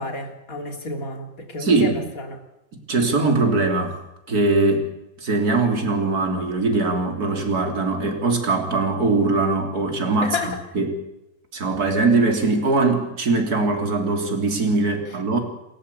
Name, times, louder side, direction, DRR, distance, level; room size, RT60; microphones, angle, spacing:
voice 1, 0.0-2.4 10.2-10.5, left 3 dB, 45° left, 4 dB, 3.8 m, -30 dB
voice 2, 1.6-2.0 2.7-3.9 4.3-4.9 5.2-10.9 11.5-15.4, right 3 dB, 50° right, 4 dB, 4.1 m, -21 dB
28.5 x 14.5 x 8.4 m, 0.91 s
omnidirectional pair, 2.1 m